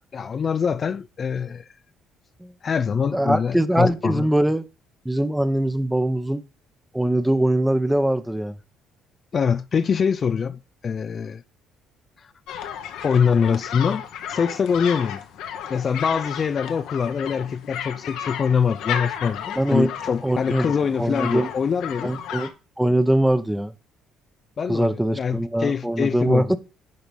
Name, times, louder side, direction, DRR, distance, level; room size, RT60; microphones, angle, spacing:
voice 1, 0.1-1.7 2.6-4.3 9.3-11.4 12.2-12.3 13.0-15.2 15.7-22.1 24.6-26.6, left 6 dB, 45° left, 0.4 m, -24 dB
voice 2, 3.1-4.6 5.0-6.4 6.9-8.5 19.6-19.9 20.2-20.7 20.9-21.5 22.0-22.5 22.8-23.7 24.7-26.6, right 1 dB, 5° right, 0.9 m, -22 dB
sound 1, 12.5-22.5, left 9 dB, 70° left, 1.1 m, -33 dB
10.5 x 4.0 x 5.3 m
hypercardioid pair, 55°, 0 cm